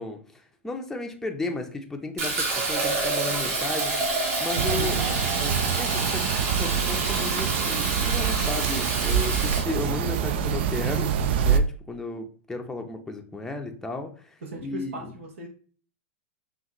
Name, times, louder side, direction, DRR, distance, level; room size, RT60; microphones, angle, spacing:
voice 1, 0.0-3.9 4.4-4.9 5.7-6.3 6.6-11.1 11.4-14.1 14.6-15.1, left 2 dB, 5° left, 3 dB, 0.6 m, -34 dB
Fill (with liquid), 2.2-9.6, right 3 dB, 40° right, 1.3 m, -28 dB
sound 1, 4.6-11.6, right 8 dB, 55° right, 0.4 m, -26 dB
voice 2, 4.6-5.6 14.4-15.5, right 3 dB, 70° right, 1 dB, 1.0 m, -36 dB
5.4 x 2.5 x 2.9 m, 0.43 s
hypercardioid pair, 105°, 7 cm